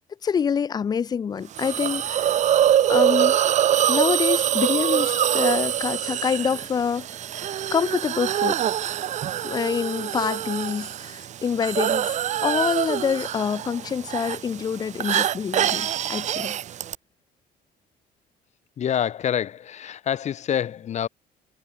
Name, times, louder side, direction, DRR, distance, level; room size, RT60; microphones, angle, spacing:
voice 1, 0.2-2.4 2.9-3.4 3.9-7.1 7.7-8.6 9.4-12.1 12.4-16.6, left 7 dB, 25° left, 0.4 m, -26 dB
Hiss, 1.6-16.9, right 10 dB, 45° right, 0.9 m, -24 dB
voice 2, 18.8-21.1, left 9 dB, 45° left, 1.6 m, -26 dB
cardioid pair, 145°, 17 cm